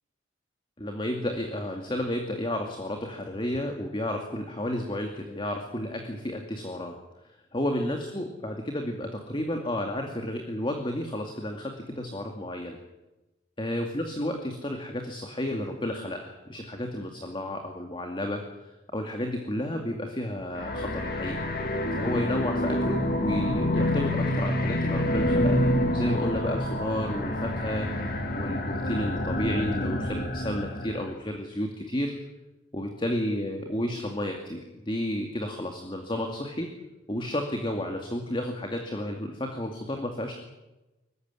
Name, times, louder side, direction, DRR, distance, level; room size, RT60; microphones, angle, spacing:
voice 1, 0.8-6.9 7.5-12.8 13.6-21.4 21.9-32.1 32.7-36.7 37.1-40.3, left 1 dB, 25° left, 4 dB, 2.4 m, -32 dB
sound 1, 20.5-31.1, left 1 dB, 50° left, 2.6 m, -27 dB
25.5 x 15.0 x 9.7 m, 1.0 s
head